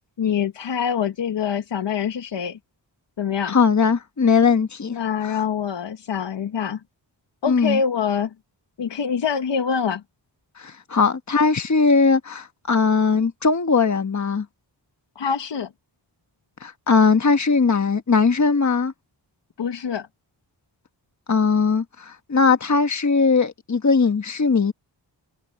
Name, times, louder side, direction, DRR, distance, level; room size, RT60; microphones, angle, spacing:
voice 1, 0.2-2.6 3.2-3.6 4.9-6.8 7.4-8.3 8.8-10.0 15.2-15.7 19.6-20.1, left 7 dB, 70° left, 1.1 m, -25 dB
voice 2, 3.5-5.0 5.2-5.4 7.5-7.8 10.6-14.5 16.6-18.9 21.3-24.7, left 5 dB, 40° left, 1.4 m, -19 dB
wide cardioid pair, 90°, 45 cm